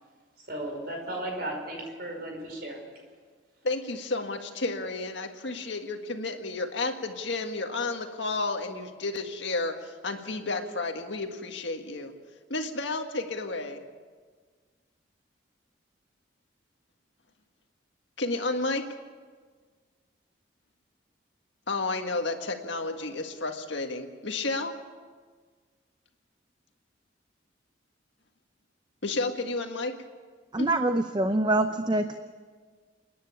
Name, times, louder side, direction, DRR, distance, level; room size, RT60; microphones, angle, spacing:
voice 1, 0.4-2.8, right 1 dB, 55° right, 2 dB, 5.2 m, -35 dB
voice 2, 3.6-12.1 12.5-13.8 18.2-18.8 21.7-24.7 29.0-29.9 30.6-30.7, left 3 dB, 75° left, 5 dB, 1.7 m, -31 dB
voice 3, 30.5-32.2, right 2 dB, 20° right, 8 dB, 0.6 m, -25 dB
29.0 x 10.5 x 8.6 m, 1.5 s
head